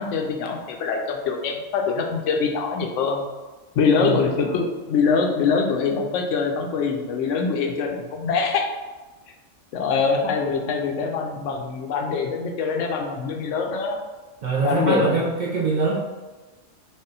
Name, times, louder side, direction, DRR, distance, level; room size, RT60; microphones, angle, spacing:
voice 1, 0.0-3.3 3.7-8.7 9.7-14.0 14.6-15.3, left 5 dB, 80° left, 2 dB, 0.9 m, -24 dB
voice 2, 14.4-16.0, right 4 dB, 60° right, -4 dB, 0.5 m, -23 dB
3.6 x 2.2 x 3.9 m, 1.2 s
omnidirectional pair, 1.3 m